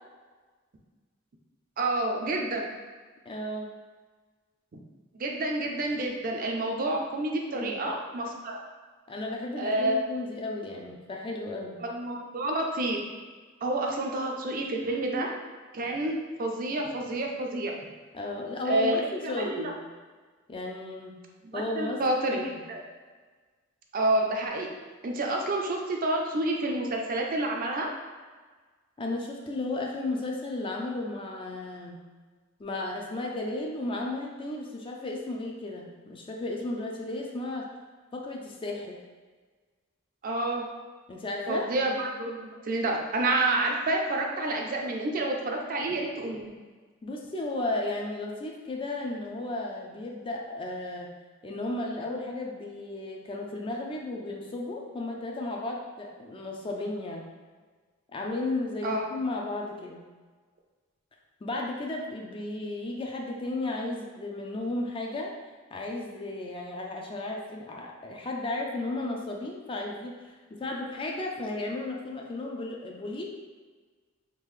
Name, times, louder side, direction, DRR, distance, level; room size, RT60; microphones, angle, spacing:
voice 1, 1.8-2.6 5.1-8.6 9.6-10.0 11.8-13.0 13.6-15.3 15.7-17.7 18.7-19.7 21.4-22.4 22.7-22.8 23.9-24.7 25.0-27.9 40.2-40.7 41.5-46.5 58.8-59.0, right 2 dB, 45° right, 1 dB, 0.4 m, -29 dB
voice 2, 3.3-3.7 7.5-7.9 9.1-11.8 18.1-19.8 20.5-21.2 21.5-22.5 29.0-32.0 32.6-37.7 38.1-39.0 41.1-41.7 47.0-51.1 51.4-57.3 58.1-60.0 61.4-65.3 65.7-73.3, left 2 dB, 25° left, 0 dB, 0.4 m, -34 dB
3.7 x 2.4 x 3.1 m, 1.4 s
head